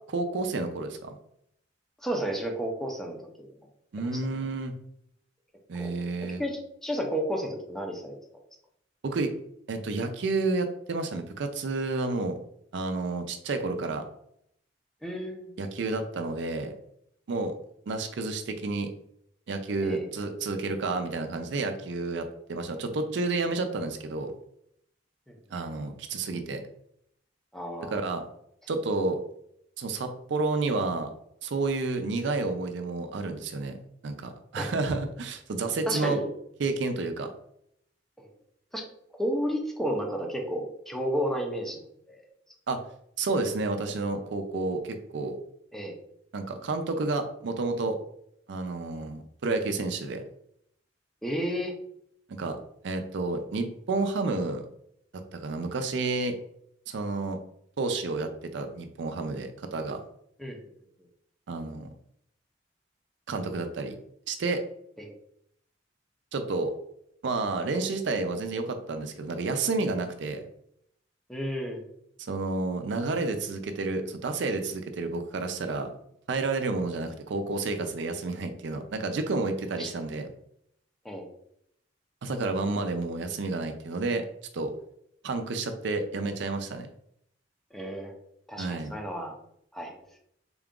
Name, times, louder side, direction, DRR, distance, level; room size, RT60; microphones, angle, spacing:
voice 1, 0.1-1.2 3.9-4.7 5.7-6.4 9.0-9.3 9.7-12.4 12.7-14.1 15.6-16.7 17.3-17.6 17.9-18.9 19.5-24.3 25.5-26.6 27.9-28.2 28.7-29.2 29.8-31.1 31.4-33.8 34.0-36.2 36.6-37.3 42.7-42.8 43.2-45.4 46.3-48.0 48.5-50.2 52.3-52.6 52.8-54.6 55.1-56.4 56.9-57.4 57.8-60.0 61.5-61.9 63.3-64.0 64.3-64.6 66.3-66.7 67.2-70.4 72.3-75.9 76.3-80.3 82.2-84.2 84.5-84.7 85.2-86.9 88.6-88.9, right 3 dB, 70° right, 7 dB, 0.4 m, -30 dB
voice 2, 2.0-3.5 4.0-4.2 5.8-5.9 6.2-8.2 15.0-15.5 19.8-20.1 27.5-28.0 34.6-34.7 35.9-36.3 38.2-38.3 38.7-38.9 39.2-42.2 45.7-46.0 51.2-51.7 60.4-60.6 65.0-65.1 71.3-71.8 79.8-79.9 81.0-81.3 87.7-88.1 88.5-89.4 89.7-90.2, equal, ahead, 2 dB, 0.5 m, -32 dB
3.7 x 2.4 x 3.6 m, 0.72 s
head